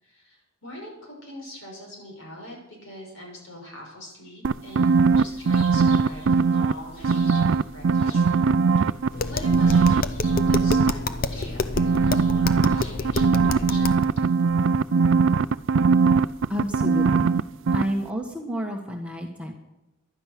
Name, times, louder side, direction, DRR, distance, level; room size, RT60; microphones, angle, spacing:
voice 1, 0.0-8.2 9.2-10.1 10.5-14.1, equal, 60° left, 0 dB, 6.1 m, -42 dB
sound 1, 4.4-6.7 7.0-9.1 9.4-10.9 11.8-17.4 17.7-17.8, right 5 dB, 55° right, 0.4 m, -20 dB
sound 2, 4.9-13.8, left 1 dB, 85° left, 5.8 m, -47 dB
Tap, 9.1-14.1, left 3 dB, 40° left, 0.6 m, -29 dB
voice 2, 16.5-17.4 17.7-19.5, equal, 5° right, 0 dB, 1.3 m, -30 dB
15.0 x 11.5 x 5.9 m, 0.92 s
head